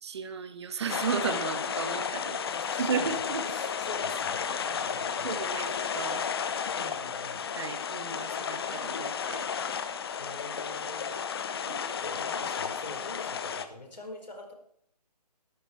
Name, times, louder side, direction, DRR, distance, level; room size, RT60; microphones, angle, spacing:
voice 1, 0.0-2.4 2.8-3.4 5.2-6.2 7.6-9.5, right 6 dB, 40° right, 10 dB, 1.4 m, -34 dB
sound 1, 0.9-13.7, left 7 dB, 35° left, 1.0 m, -33 dB
voice 2, 2.4-3.2 3.4-5.9 6.7-7.5 10.2-14.5, left 2 dB, 85° left, 3 dB, 4.6 m, -45 dB
15.5 x 13.0 x 4.5 m, 0.64 s
figure-of-eight pair, 155°, 21 cm